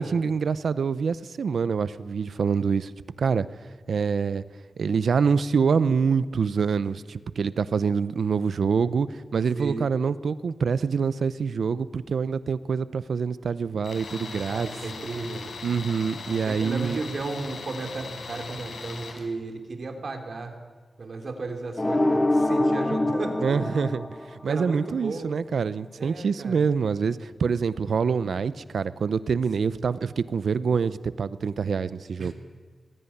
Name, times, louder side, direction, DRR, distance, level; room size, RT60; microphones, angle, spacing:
voice 1, 0.0-2.9 3.2-3.5 3.9-4.4 4.8-14.7 15.6-17.0 23.4-24.1 24.4-32.3, right 5 dB, 80° right, 16 dB, 0.7 m, -25 dB
voice 2, 9.5-9.9 14.5-15.5 16.5-20.6 21.0-23.6 24.5-25.3 26.0-26.6 28.2-28.3 29.6-30.0 32.2-32.3, right 3 dB, 50° right, 5 dB, 3.0 m, -34 dB
Tools, 13.8-19.2, left 4 dB, 85° left, 4.2 m, -39 dB
sound 1, 21.8-24.8, left 1 dB, 20° left, 1.2 m, -24 dB
19.5 x 16.0 x 9.9 m, 1.5 s
wide cardioid pair, 160°, 0 cm